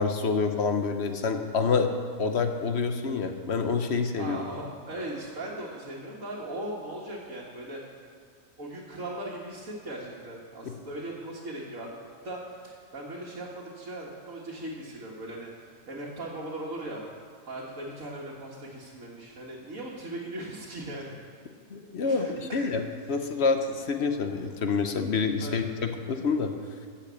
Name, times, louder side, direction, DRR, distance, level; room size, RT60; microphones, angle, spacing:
voice 1, 0.0-1.9 2.2-4.4 10.6-10.7 21.7-22.8 23.1-26.5, left 5 dB, 55° left, 6 dB, 1.0 m, -27 dB
voice 2, 4.2-7.8 8.6-11.9 12.2-15.5 15.9-17.0 17.4-21.2 22.0-22.8 25.4-25.6, right 1 dB, 65° right, -6 dB, 2.1 m, -38 dB
15.0 x 5.9 x 8.2 m, 2.3 s
omnidirectional pair, 1.5 m